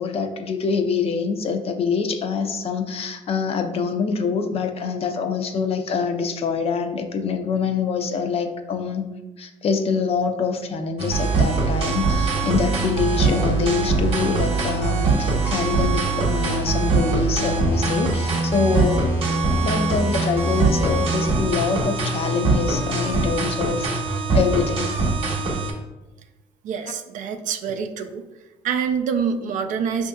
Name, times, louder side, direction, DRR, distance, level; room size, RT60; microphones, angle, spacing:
voice 1, 0.0-9.0 9.4-19.0 19.6-24.0 24.3-24.9, left 5 dB, 45° left, 7 dB, 0.5 m, -25 dB
sound 1, 11.0-25.7, right 3 dB, 40° right, 0.9 m, -22 dB
voice 2, 26.6-28.2 28.6-30.1, right 6 dB, 60° right, 6 dB, 0.4 m, -26 dB
5.3 x 2.6 x 2.3 m, 1.1 s
supercardioid pair, 80°, 14 cm